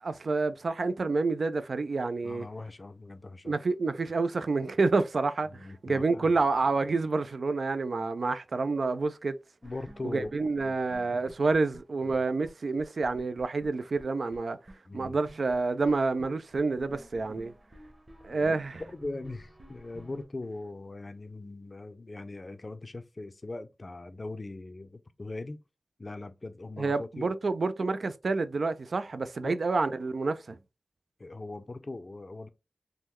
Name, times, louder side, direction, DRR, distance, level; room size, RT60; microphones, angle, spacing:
voice 1, 0.0-2.5 3.5-9.4 10.0-14.6 14.9-17.5 18.2-18.8 26.8-30.6, right 3 dB, 75° right, 0.3 m, -28 dB
voice 2, 2.2-3.6 5.5-6.4 9.6-10.3 10.6-10.8 12.0-12.2 14.9-15.2 17.3-17.4 18.3-18.5 18.9-25.6 26.0-27.4 29.4-29.6 31.2-32.5, left 2 dB, 45° left, 0.4 m, -40 dB
sound 1, 9.6-12.2 12.4-12.5 12.8-14.4 14.7-14.8 15.0-20.2, right 1 dB, 30° right, 0.9 m, -51 dB
3.6 x 2.1 x 3.0 m
wide cardioid pair, 55°, 0 cm